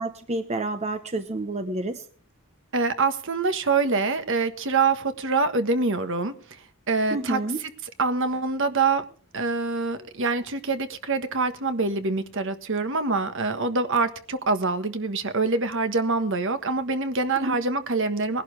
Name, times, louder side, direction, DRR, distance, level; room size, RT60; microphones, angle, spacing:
voice 1, 0.0-2.0 7.1-7.6 17.4-17.5, right 2 dB, 30° right, 8 dB, 0.9 m, -29 dB
voice 2, 2.7-6.3 6.9-7.4 8.0-9.0 9.3-18.4, right 3 dB, 60° right, 9 dB, 1.4 m, -25 dB
20.5 x 11.5 x 3.3 m, 0.43 s
head